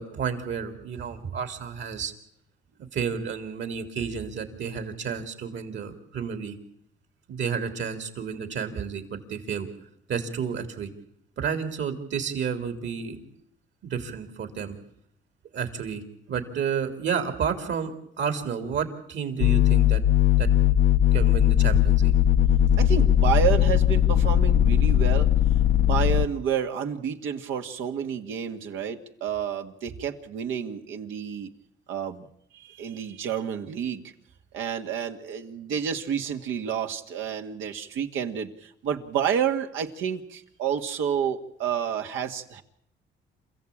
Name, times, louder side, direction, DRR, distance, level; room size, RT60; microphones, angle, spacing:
voice 1, 0.0-2.1 2.9-6.6 7.3-9.7 10.1-10.9 11.4-13.4 13.8-14.8 15.5-16.0 16.3-20.0 20.4-20.5 21.1-22.1, right 6 dB, 65° right, 8 dB, 3.4 m, -31 dB
sound 1, 19.4-26.3, left 11 dB, 85° left, 0.8 m, -19 dB
voice 2, 22.8-25.3 25.8-31.5 31.9-32.3 32.5-34.0 34.5-42.6, right 8 dB, 90° right, 5 dB, 1.9 m, -29 dB
28.0 x 15.5 x 8.7 m, 0.72 s
cardioid pair, 90°, 20 cm